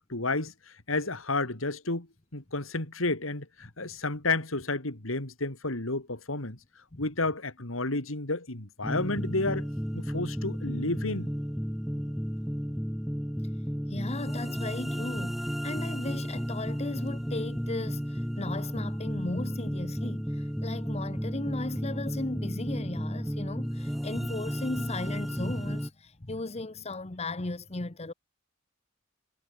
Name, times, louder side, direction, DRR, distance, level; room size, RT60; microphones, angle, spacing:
voice 1, 0.0-2.1 2.3-6.6 7.0-9.7 9.9-11.3, left 2 dB, 90° left, 3.6 m, -31 dB
sound 1, 8.8-25.9, equal, ahead, 0.5 m, -33 dB
voice 2, 13.9-28.1, left 2 dB, 30° left, 1.1 m, -36 dB
head